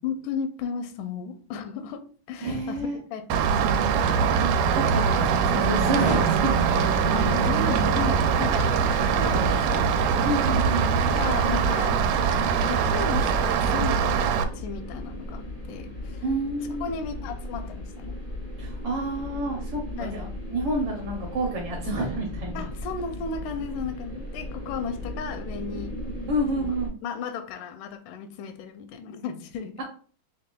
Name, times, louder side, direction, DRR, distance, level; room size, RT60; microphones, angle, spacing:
voice 1, 0.0-2.8 3.1-3.8 7.1-8.8 9.1-9.9 11.1-12.0 12.7-16.3 16.7-18.1 20.0-20.2 22.5-25.9 26.5-29.7, left 6 dB, 85° left, 8 dB, 2.0 m, -34 dB
voice 2, 2.4-3.0 4.4-7.0 10.2-10.9 16.2-16.9 18.6-22.6 26.3-27.0 29.8-29.9, right 1 dB, 70° right, 0 dB, 1.4 m, -29 dB
Rain, 3.3-14.4, right 6 dB, 85° right, 2.0 m, -22 dB
sound 1, 8.8-26.9, equal, 50° left, 0.6 m, -36 dB
5.8 x 3.2 x 2.2 m, 0.43 s
omnidirectional pair, 3.6 m